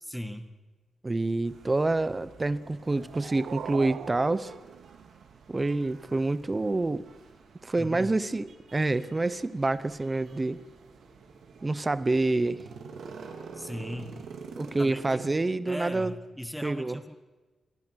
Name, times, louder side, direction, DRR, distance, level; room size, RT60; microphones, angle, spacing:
voice 1, 0.0-0.5 7.8-8.1 13.5-14.2 14.8-15.2 15.6-17.2, equal, ahead, 8 dB, 1.5 m, -38 dB
voice 2, 1.0-4.5 5.5-7.0 7.6-10.6 11.6-12.6 14.6-16.1 16.6-17.0, right 2 dB, 20° right, 15 dB, 0.8 m, -27 dB
sound 1, 1.4-15.3, right 5 dB, 65° right, 3.5 m, -48 dB
sound 2, 2.7-5.7, right 8 dB, 85° right, 0.6 m, -42 dB
25.5 x 21.0 x 6.4 m, 1.2 s
wide cardioid pair, 160°, 0 cm